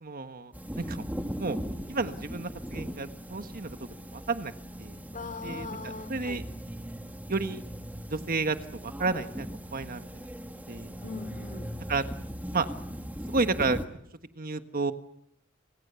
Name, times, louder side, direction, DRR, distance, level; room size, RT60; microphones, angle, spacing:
voice 1, 0.0-1.0 1.4-1.6 1.9-3.8 4.1-4.5 4.8-5.0 5.4-6.5 7.3-7.6 8.1-8.6 8.8-10.1 10.7-10.9 11.9-12.0 12.5-12.7 13.3-13.8 14.3-14.9, right 3 dB, 45° right, 9 dB, 1.4 m, -31 dB
sound 1, 0.5-13.9, equal, 10° right, 2.1 m, -39 dB
voice 2, 5.1-6.4 11.0-11.8, left 3 dB, 40° left, 11 dB, 3.2 m, -40 dB
29.5 x 27.5 x 7.0 m, 0.74 s
head